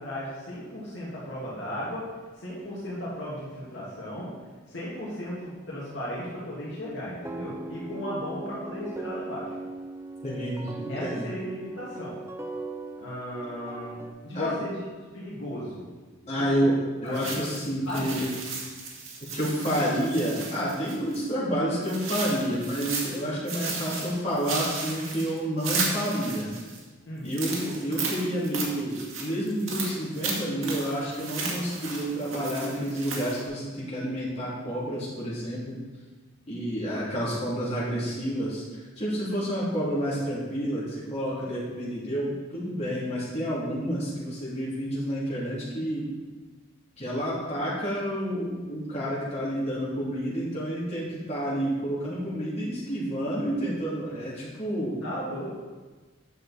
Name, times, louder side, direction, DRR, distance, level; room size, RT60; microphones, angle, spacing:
voice 1, 0.0-2.1 2.4-4.3 4.7-9.5 10.9-12.2 13.0-15.9 16.4-16.7 17.0-17.4 17.9-18.3 27.1-27.3 55.0-55.5, equal, 65° left, -7 dB, 2.1 m, -36 dB
sound 1, 7.2-14.1, right 2 dB, 15° right, 0.5 m, -39 dB
voice 2, 10.2-11.3 14.3-14.5 16.3-16.7 17.0-18.3 19.3-26.5 27.2-35.8 36.5-38.6 39.0-46.1 47.0-54.9, equal, 35° left, -8 dB, 3.1 m, -29 dB
sound 2, 17.1-21.3 21.8-23.2 23.5-26.8 27.3-33.5, right 4 dB, 90° right, 1.8 m, -34 dB
9.5 x 6.6 x 4.3 m, 1.3 s
head